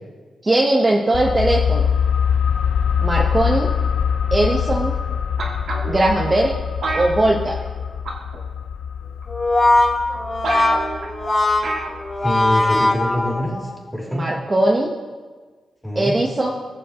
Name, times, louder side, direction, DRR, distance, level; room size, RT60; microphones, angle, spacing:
voice 1, 0.4-1.9 3.0-3.7 4.3-4.9 5.9-6.5 6.9-7.5 14.1-14.9 16.0-16.5, right 1 dB, 25° right, -1 dB, 0.9 m, -19 dB
sound 1, 1.1-12.5 12.8-12.9, left 7 dB, 75° left, 0.5 m, -24 dB
sound 2, 5.4-6.1 6.8-7.8 8.1-8.4 9.2-9.3 9.8-9.9 10.1-10.2 10.4-11.1 11.6-12.0 12.3-12.4, right 2 dB, 80° right, 1.8 m, -27 dB
Brass instrument, 9.3-13.8, left 2 dB, 35° left, 2.2 m, -19 dB
voice 2, 12.2-14.3 15.8-16.1, left 1 dB, 5° left, -2 dB, 3.0 m, -25 dB
20.0 x 7.1 x 2.9 m, 1.4 s
cardioid pair, 75°, 0 cm